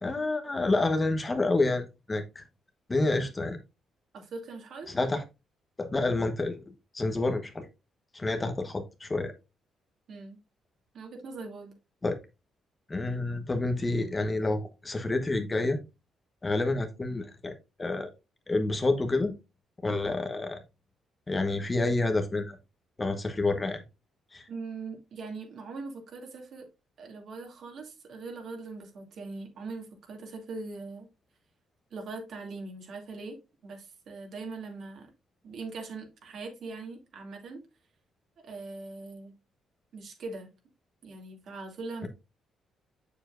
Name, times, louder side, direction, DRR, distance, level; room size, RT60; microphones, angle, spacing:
voice 1, 0.0-2.4 2.9-3.6 4.9-5.2 5.8-6.6 6.9-7.6 8.1-9.3 12.0-12.2 12.9-15.8 16.4-18.1 18.5-19.3 19.8-20.6 21.3-22.6 23.0-23.8 24.3-24.5, left 2 dB, 20° left, 1.2 m, -28 dB
voice 2, 4.1-4.9 10.1-10.4 10.9-11.8 24.5-26.7 27.0-31.1 31.9-33.4 33.6-35.1 35.4-37.6 38.4-39.3 39.9-40.5 41.0-42.1, right 3 dB, 65° right, 2.5 m, -41 dB
7.2 x 7.0 x 2.5 m
cardioid pair, 105°, 0 cm